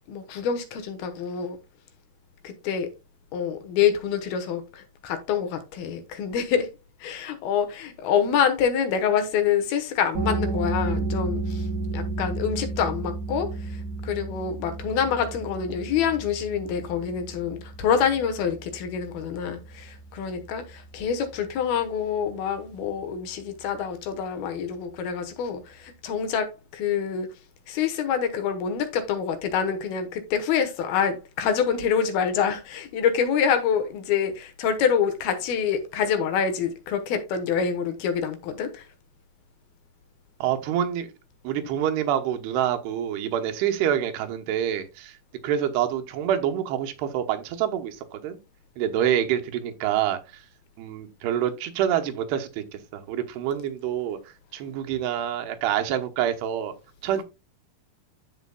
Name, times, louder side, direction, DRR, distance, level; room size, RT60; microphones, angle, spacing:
voice 1, 0.1-1.6 2.4-2.9 3.3-6.7 7.0-11.7 11.9-27.3 27.7-38.8, left 7 dB, 75° left, 2.9 m, -26 dB
sound 1, 10.1-21.5, right 3 dB, 55° right, 2.0 m, -32 dB
voice 2, 40.4-41.1 41.4-45.2 45.4-48.4 48.8-50.4 50.8-52.6 52.9-54.2 54.5-56.7 57.0-57.2, right 10 dB, 90° right, 3.1 m, -26 dB
13.5 x 5.0 x 2.3 m
omnidirectional pair, 4.6 m